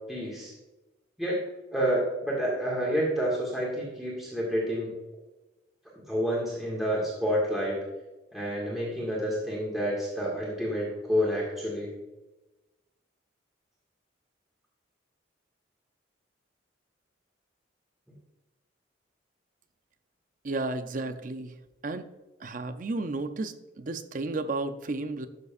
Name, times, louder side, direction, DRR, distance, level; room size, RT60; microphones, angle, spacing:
voice 1, 0.1-0.5 1.2-1.4 1.7-4.9 6.1-7.8 8.3-11.9, equal, ahead, -6 dB, 1.8 m, -29 dB
voice 2, 20.4-21.6 21.8-22.1 22.4-25.3, right 2 dB, 45° right, 10 dB, 0.5 m, -33 dB
12.0 x 6.7 x 2.5 m, 1.1 s
head